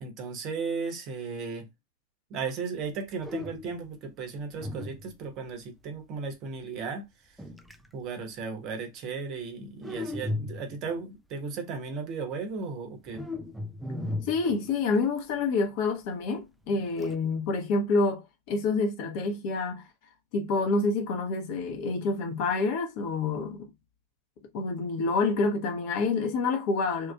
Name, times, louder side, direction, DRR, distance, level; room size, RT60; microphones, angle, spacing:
voice 1, 0.0-1.7 2.3-7.0 7.9-13.3, right 5 dB, 40° right, 0.7 m, -35 dB
sound 1, 2.8-2.9 3.2-3.9 4.6-5.5 7.4-7.9 9.8-10.9 13.1-15.2 16.7-17.2, left 2 dB, ahead, 0.3 m, -36 dB
voice 2, 14.2-19.9 20.3-23.7 24.5-27.1, left 3 dB, 45° left, 0.8 m, -28 dB
2.9 x 2.4 x 2.2 m
figure-of-eight pair, 90°, 0 cm